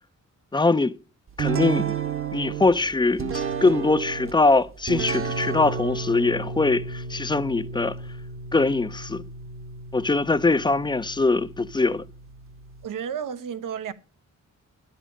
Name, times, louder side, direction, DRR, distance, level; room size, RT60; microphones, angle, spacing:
voice 1, 0.5-0.9 1.4-1.9 2.3-8.0 8.5-9.2 9.9-12.0, left 3 dB, 15° left, 0.4 m, -22 dB
sound 1, 1.4-12.9, right 6 dB, 45° right, 0.9 m, -32 dB
voice 2, 12.8-13.9, right 8 dB, 80° right, 0.9 m, -32 dB
10.0 x 8.3 x 4.9 m
cardioid pair, 105°, 31 cm